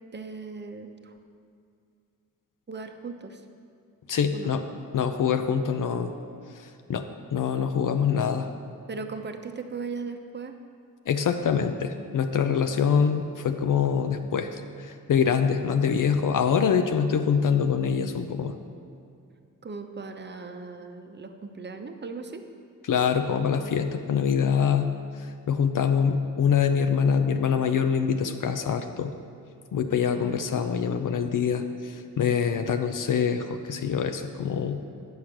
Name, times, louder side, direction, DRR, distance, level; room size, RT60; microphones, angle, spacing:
voice 1, 0.1-1.1 2.7-3.4 4.3-4.5 8.9-10.6 19.6-22.4 30.1-30.4, right 4 dB, 30° right, 6 dB, 0.8 m, -38 dB
voice 2, 4.1-4.6 4.9-6.1 6.9-7.1 7.3-8.5 11.1-18.5 22.9-24.9 25.5-29.1 29.7-34.8, left 7 dB, 65° left, 7 dB, 0.6 m, -24 dB
8.2 x 6.5 x 5.9 m, 2.4 s
cardioid pair, 75°, 35 cm